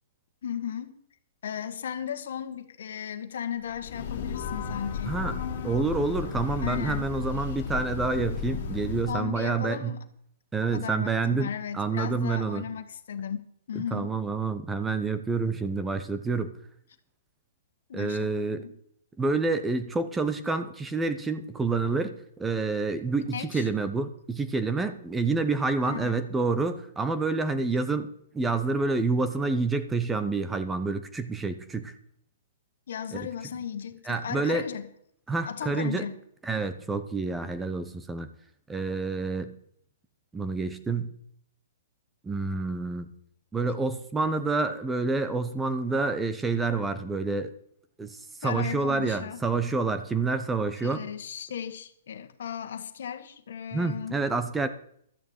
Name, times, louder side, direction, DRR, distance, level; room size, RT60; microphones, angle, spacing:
voice 1, 0.4-0.9 1.4-5.2 6.6-7.1 9.1-10.0 10.7-13.4 13.7-14.2 17.9-18.7 23.2-23.7 25.8-26.2 32.9-34.9 35.4-36.2 48.4-49.4 50.8-54.2, left 8 dB, 60° left, 1.6 m, -36 dB
Breathing / Train, 3.7-9.3, left 6 dB, 45° left, 2.7 m, -34 dB
voice 2, 5.1-5.4 5.6-10.0 10.5-12.7 13.7-16.5 17.9-18.7 19.2-31.9 33.1-33.3 34.1-34.6 35.3-36.1 36.4-38.3 38.7-39.5 40.3-41.1 42.2-43.1 43.5-47.5 48.0-51.0 53.7-54.7, right 3 dB, 5° right, 0.8 m, -28 dB
13.0 x 6.8 x 8.8 m
hypercardioid pair, 170°, 0 cm